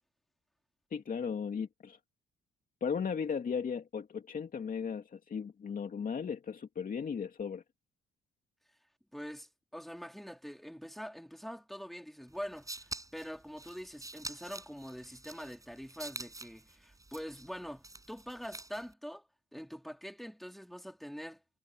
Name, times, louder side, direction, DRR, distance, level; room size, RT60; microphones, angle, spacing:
voice 1, 0.9-2.0 2.8-7.6, left 6 dB, 45° left, 2.5 m, -36 dB
voice 2, 9.1-19.2 19.5-21.4, equal, ahead, 4.1 m, -44 dB
sound 1, 12.3-18.9, right 2 dB, 15° right, 6.5 m, -47 dB
cardioid pair, 90°, 20 cm